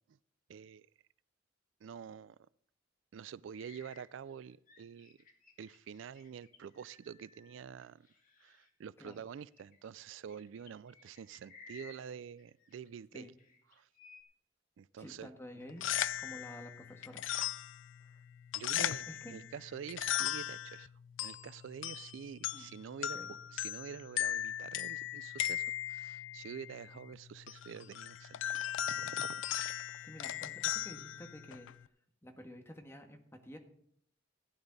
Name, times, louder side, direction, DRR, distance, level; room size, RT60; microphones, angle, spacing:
voice 1, 0.5-0.9 1.8-2.4 3.1-5.2 5.6-8.1 8.4-13.3 13.7-13.9 14.8-15.3 18.5-20.9 21.2-23.2 23.5-28.4 28.9-29.4, right 7 dB, 80° right, 0.3 m, -47 dB
sound 1, 3.5-8.7 9.1-12.9 13.1-14.2, left 3 dB, 45° left, 2.1 m, -58 dB
voice 2, 15.0-15.8 16.2-17.5 18.7-19.4 22.5-22.7 23.1-23.3 30.0-31.7 32.2-33.6, equal, 15° left, 1.5 m, -50 dB
sound 2, 15.6-31.8, left 12 dB, 80° left, 0.4 m, -38 dB
15.5 x 10.0 x 4.0 m
head